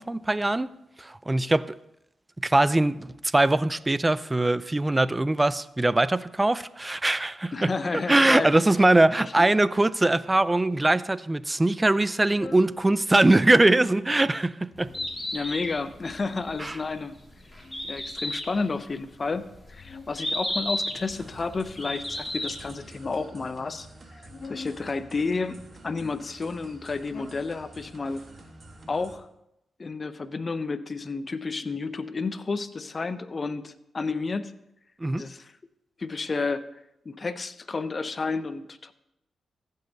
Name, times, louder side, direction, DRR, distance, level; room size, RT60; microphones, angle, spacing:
voice 1, 0.0-1.8 2.4-7.7 8.1-14.9 16.6-16.8 35.0-35.3, right 2 dB, 20° right, 0.4 m, -22 dB
voice 2, 7.5-8.5 9.4-9.5 15.3-17.2 17.9-23.9 24.5-25.6 25.8-28.2 28.9-29.3 29.8-34.5 35.2-35.5 36.0-36.6 37.0-38.9, left 4 dB, 45° left, 0.7 m, -31 dB
sound 1, 12.3-12.7 13.4-13.9 14.7-15.2 15.9-16.5 17.4-18.6 19.1-20.2 20.9-21.9 22.6-23.3 24.2-24.8 25.6-26.2 26.8-27.2, left 3 dB, 65° left, 2.0 m, -45 dB
Bird, 14.8-22.8, left 1 dB, 10° left, 2.8 m, -34 dB
sound 2, 21.1-29.2, right 2 dB, 45° right, 1.7 m, -49 dB
15.5 x 5.5 x 3.9 m
supercardioid pair, 50°, 0 cm